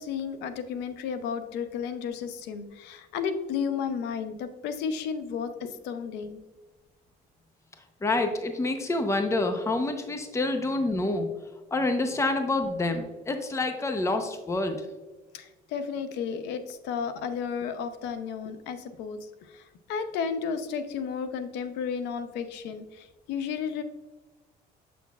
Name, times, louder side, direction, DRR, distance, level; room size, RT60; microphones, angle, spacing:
voice 1, 0.0-6.4 15.3-23.8, left 6 dB, 90° left, 10 dB, 0.6 m, -33 dB
voice 2, 8.0-11.3 11.7-14.8, left 2 dB, 15° left, 6 dB, 0.7 m, -27 dB
7.1 x 6.2 x 2.3 m, 1.2 s
cardioid pair, 110°, 17 cm